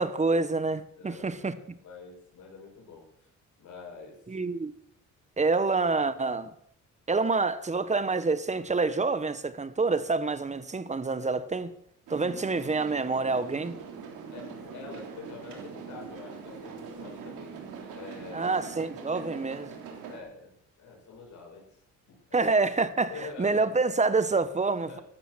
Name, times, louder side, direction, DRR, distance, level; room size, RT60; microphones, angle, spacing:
voice 1, 0.0-1.5 4.3-4.7 5.4-6.5 7.1-11.7 12.1-13.7 18.3-19.7 22.3-25.0, right 3 dB, 25° right, 1.3 m, -27 dB
voice 2, 1.0-3.3 3.6-4.2 14.3-17.6 17.9-18.6 20.0-21.8 22.1-22.5 23.1-23.6 24.8-25.0, left 4 dB, 75° left, 7.1 m, -46 dB
sound 1, 12.1-20.2, right 6 dB, 90° right, 3.5 m, -43 dB
15.0 x 12.0 x 6.4 m
cardioid pair, 90°, 30 cm